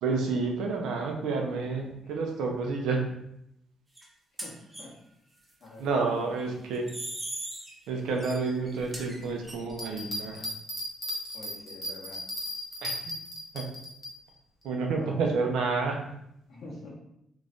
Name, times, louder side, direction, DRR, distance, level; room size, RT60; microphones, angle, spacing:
voice 1, 0.0-3.0 5.8-6.9 7.9-10.4 12.8-12.9 13.5-13.7 14.6-16.1, right 4 dB, 90° right, 1 dB, 0.7 m, -29 dB
voice 2, 2.0-2.4 4.4-4.9 5.6-6.5 11.3-12.2 14.9-15.2 16.5-16.9, left 2 dB, 60° left, -6 dB, 1.2 m, -47 dB
sound 1, 4.0-4.1 4.4-4.8 6.7-7.8 8.2-9.5, right 1 dB, 15° right, 0.8 m, -38 dB
Bell, 9.7-14.1 14.6-14.7, equal, 30° left, 1.2 m, -36 dB
3.1 x 2.6 x 3.5 m, 0.78 s
cardioid pair, 95°, 0 cm